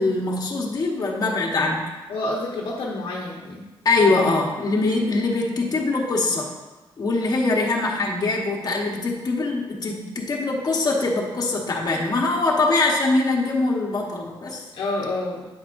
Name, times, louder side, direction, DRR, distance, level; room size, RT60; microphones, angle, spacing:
voice 1, 0.0-1.8 3.8-6.5 7.0-14.6, left 3 dB, 45° left, -2 dB, 1.2 m, -23 dB
voice 2, 2.1-3.7 14.7-15.5, left 2 dB, 70° left, -3 dB, 1.1 m, -28 dB
8.5 x 7.9 x 2.6 m, 1.2 s
cardioid pair, 105°, 9 cm